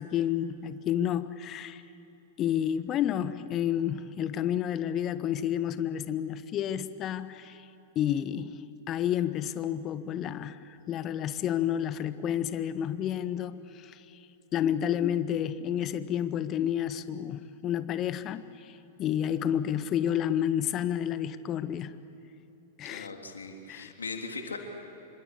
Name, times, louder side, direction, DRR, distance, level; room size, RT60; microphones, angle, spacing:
voice 1, 0.0-1.8 2.4-7.7 7.9-14.2 14.5-21.9 22.8-23.1 23.7-23.9, left 10 dB, 35° left, 13 dB, 1.2 m, -30 dB
voice 2, 22.8-24.6, left 4 dB, 80° left, 3 dB, 3.3 m, -39 dB
28.0 x 25.0 x 8.4 m, 2.9 s
figure-of-eight pair, 100°, 0 cm